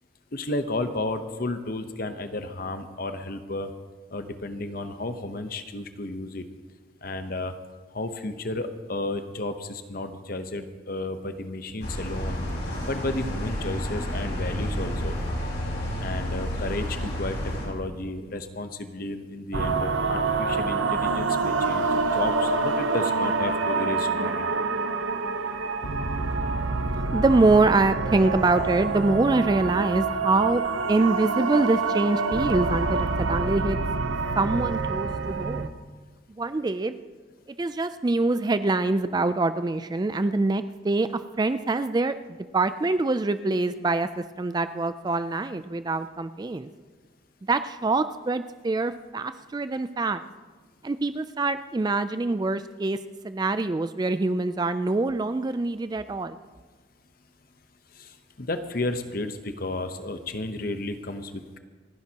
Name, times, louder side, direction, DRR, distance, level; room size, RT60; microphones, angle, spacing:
voice 1, 0.3-3.7 4.1-6.5 7.0-7.5 7.9-12.4 12.8-15.2 16.0-24.4 58.0-61.6, left 2 dB, 50° left, 9 dB, 0.9 m, -32 dB
sound 1, 11.8-17.7, equal, 65° left, 5.0 m, -30 dB
sound 2, 19.5-35.7, right 4 dB, 80° right, 0.9 m, -26 dB
voice 2, 27.1-30.6 30.9-33.8 34.4-35.8 36.4-36.9 37.5-41.1 41.4-42.1 42.5-46.7 47.5-50.2 50.8-53.0 53.2-56.4, right 3 dB, 20° right, 11 dB, 0.3 m, -24 dB
29.0 x 10.5 x 2.9 m, 1.4 s
head